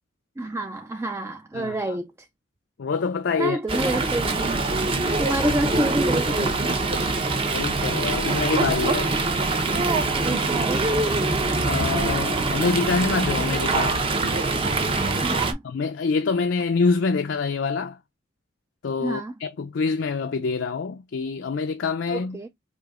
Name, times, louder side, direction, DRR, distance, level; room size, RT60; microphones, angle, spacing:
voice 1, 0.4-2.1 3.4-4.7 5.2-7.6 10.1-11.2 15.2-15.6 19.0-19.3 22.1-22.5, right 1 dB, 15° right, 0.3 m, -29 dB
voice 2, 1.5-2.0 2.8-3.6 4.0-4.1 7.5-9.1 11.6-14.0 15.6-18.0 18.8-22.4, left 4 dB, 70° left, 0.4 m, -26 dB
Fowl, 3.7-15.5, right 3 dB, 30° right, 0.7 m, -24 dB
4.9 x 2.7 x 2.4 m
head